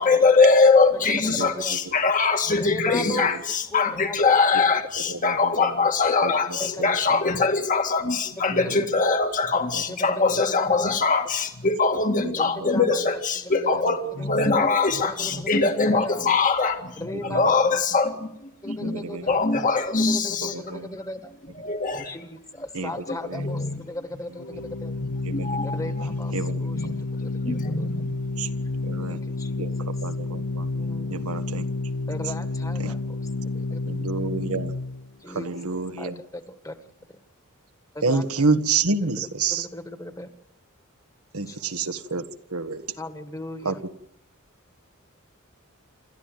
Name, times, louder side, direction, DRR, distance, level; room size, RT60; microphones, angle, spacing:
voice 1, 0.0-17.0 17.3-19.0 19.3-20.5 21.6-22.1 23.4-23.7 25.3-26.1 26.7-26.9 27.4-28.1, left 4 dB, 40° left, 5 dB, 2.0 m, -22 dB
voice 2, 1.3-1.8 2.5-4.4 6.5-7.0 8.4-9.0 9.5-10.9 12.4-13.2 13.5-13.8 14.2-14.7 15.1-16.3 17.0-17.8 18.6-19.5 19.9-21.3 22.0-25.0 25.6-26.9 27.2-27.3 27.6-27.9 29.2-29.7 30.7-31.3 32.1-33.2 33.5-34.0 35.2-35.5 36.0-36.8 37.1-37.2 37.9-38.2 39.0-40.3 41.5-41.7 43.0-43.8, left 1 dB, 15° left, 8 dB, 1.9 m, -37 dB
voice 3, 5.1-5.7 6.2-6.3 6.8-6.9 8.5-8.9 9.7-9.8 12.2-12.3 17.1-17.4 18.8-19.3 20.4-20.9 22.8-22.9 23.3-23.4 25.4-25.5 26.3-26.9 27.5-27.9 28.4-28.5 28.8-29.2 29.6-30.7 31.1-31.7 32.8-32.9 33.8-34.7 35.3-36.1 38.0-39.7 41.3-42.8 43.7-43.8, right 4 dB, 80° right, 8 dB, 1.6 m, -28 dB
Organ, 24.4-35.1, left 3 dB, 85° left, 0.8 m, -30 dB
28.0 x 13.5 x 9.3 m, 0.82 s
head